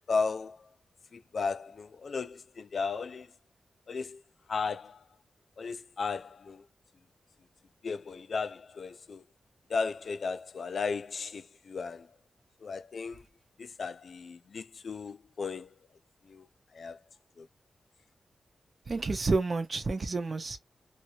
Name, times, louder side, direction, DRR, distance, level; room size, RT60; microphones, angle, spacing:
voice 1, 0.1-0.7 1.1-3.3 3.9-4.2 4.5-5.0 5.6-6.6 7.8-9.2 9.7-12.1 12.6-13.2 13.6-15.7 16.3-16.5 16.7-17.0 17.4-17.5, left 4 dB, 60° left, 0.3 m, -35 dB
voice 2, 18.9-20.6, right 3 dB, 40° right, 0.8 m, -30 dB
2.7 x 2.7 x 2.9 m
wide cardioid pair, 110°, 0 cm